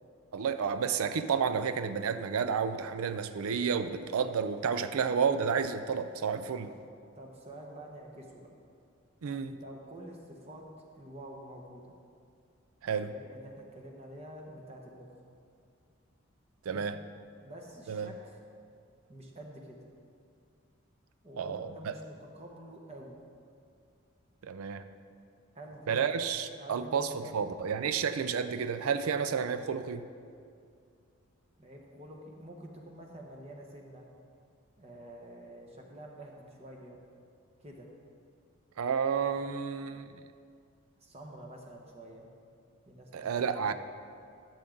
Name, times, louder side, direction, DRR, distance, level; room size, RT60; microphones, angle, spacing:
voice 1, 0.3-6.7 9.2-9.6 12.8-13.1 16.7-17.0 17.9-18.1 21.4-21.7 24.4-24.9 25.9-30.1 38.8-40.2 43.1-43.7, right 6 dB, 90° right, 10 dB, 0.4 m, -31 dB
voice 2, 7.1-8.5 9.5-10.6 10.9-11.9 12.8-15.2 16.7-16.9 17.4-18.4 19.1-19.8 21.2-23.2 25.5-26.1 26.6-27.5 31.6-34.0 34.8-37.0 37.6-37.9 41.0-42.3 42.9-43.7, right 1 dB, 30° right, 0 dB, 1.1 m, -48 dB
12.0 x 7.1 x 3.8 m, 2.3 s
head